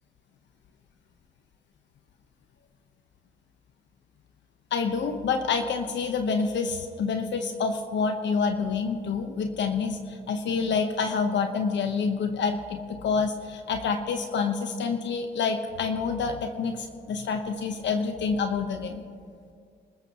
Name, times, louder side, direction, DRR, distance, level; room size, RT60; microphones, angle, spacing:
voice 1, 4.7-19.0, left 5 dB, 65° left, 6 dB, 1.0 m, -27 dB
27.5 x 14.0 x 3.0 m, 2.2 s
cardioid pair, 90°, 20 cm